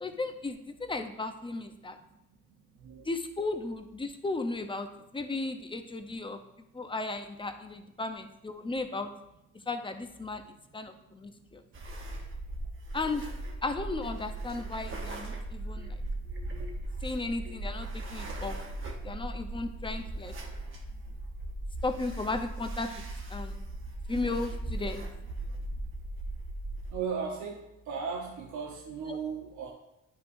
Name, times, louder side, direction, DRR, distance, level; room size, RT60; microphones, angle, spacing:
voice 1, 0.0-2.0 3.0-6.4 6.7-9.1 9.7-10.4 10.7-11.6 12.9-13.2 13.6-15.9 17.0-18.6 19.0-20.3 21.8-22.9 23.3-23.6 24.1-25.0 29.1-29.2, left 3 dB, 15° left, 7 dB, 0.7 m, -35 dB
sound 1, 11.7-26.9, right 2 dB, 40° right, 1.1 m, -38 dB
voice 2, 26.9-27.6 27.9-29.7, right 6 dB, 75° right, 0 dB, 1.0 m, -36 dB
9.5 x 5.7 x 2.6 m, 0.89 s
cardioid pair, 90°, 30 cm